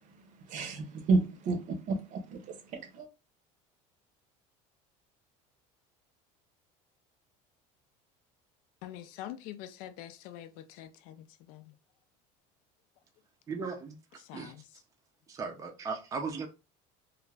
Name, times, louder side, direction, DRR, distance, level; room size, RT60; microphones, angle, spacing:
voice 1, 0.0-3.1, right 3 dB, 50° right, 0.7 m, -32 dB
voice 2, 8.8-11.7 14.2-14.7, left 12 dB, 65° left, 0.4 m, -45 dB
voice 3, 13.5-14.0 14.3-14.5 15.3-16.5, right 4 dB, 20° right, 0.5 m, -37 dB
2.4 x 2.1 x 3.2 m
supercardioid pair, 120°, 16 cm